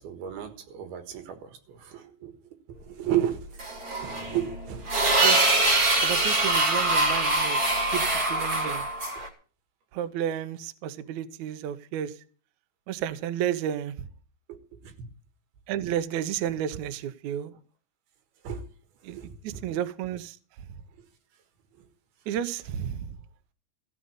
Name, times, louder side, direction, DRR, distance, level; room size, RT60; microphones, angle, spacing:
voice 1, 0.0-2.4 2.7-3.5 4.0-4.9 14.5-15.1 18.4-18.7 19.1-19.6 21.8-21.9, right 10 dB, 90° right, 3.5 m, -33 dB
sound 1, 3.6-9.3, right 2 dB, 30° right, 1.9 m, -24 dB
voice 2, 5.2-5.5 6.0-7.6 7.9-8.9 9.9-12.1 12.9-14.1 15.7-17.5 19.0-20.4 22.3-23.2, right 10 dB, 75° right, 1.8 m, -32 dB
15.0 x 5.3 x 9.6 m
omnidirectional pair, 4.3 m